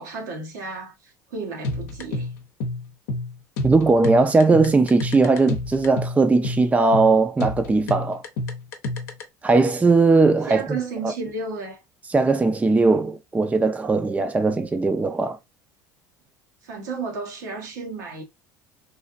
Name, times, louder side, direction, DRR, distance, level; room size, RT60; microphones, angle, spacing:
voice 1, 0.0-2.3 10.5-11.8 16.6-18.2, right 4 dB, 80° right, 1.0 m, -33 dB
sound 1, 1.6-9.2, left 2 dB, 75° left, 0.7 m, -29 dB
voice 2, 3.6-8.2 9.4-10.8 11.0-11.1 12.1-15.4, right 3 dB, 15° right, 0.5 m, -19 dB
3.3 x 2.5 x 2.4 m
hypercardioid pair, 75°, 10 cm